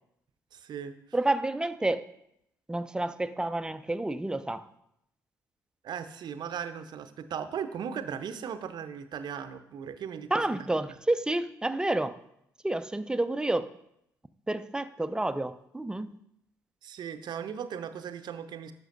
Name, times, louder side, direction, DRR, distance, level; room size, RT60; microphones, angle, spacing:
voice 1, 0.5-0.9 5.8-10.6 16.8-18.7, right 8 dB, 55° right, 10 dB, 0.6 m, -37 dB
voice 2, 1.1-2.1 2.7-4.7 10.3-12.2 12.6-13.7 14.5-16.1, right 2 dB, 10° right, 12 dB, 0.4 m, -29 dB
11.5 x 6.5 x 2.6 m, 0.78 s
hypercardioid pair, 45°, 9 cm